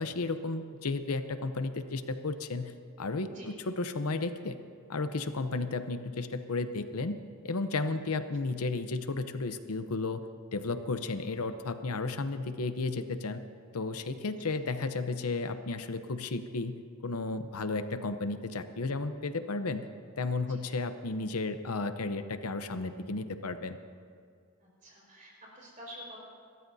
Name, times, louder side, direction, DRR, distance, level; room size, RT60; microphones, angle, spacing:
voice 1, 0.0-4.6 4.9-7.1 7.4-10.2 10.5-13.4 13.7-16.8 17.0-19.9 20.2-23.8, left 3 dB, 80° left, 9 dB, 0.8 m, -33 dB
voice 2, 14.3-14.6 20.5-20.6 24.6-26.2, equal, 35° right, -3 dB, 5.0 m, -49 dB
29.5 x 13.5 x 2.7 m, 2.2 s
head